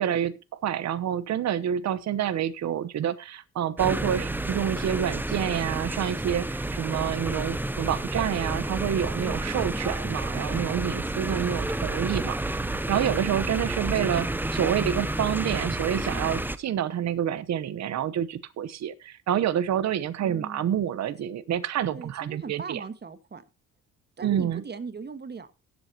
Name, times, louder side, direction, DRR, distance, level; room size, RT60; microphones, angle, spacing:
voice 1, 0.0-22.8 24.2-24.6, right 10 dB, 60° right, 14 dB, 1.0 m, -28 dB
sound 1, 3.8-16.6, right 2 dB, 5° right, 0.8 m, -30 dB
voice 2, 20.2-20.7 21.9-23.4 24.2-25.6, right 5 dB, 35° right, 11 dB, 1.6 m, -39 dB
18.0 x 8.0 x 2.9 m, 0.26 s
cardioid pair, 90°, 30 cm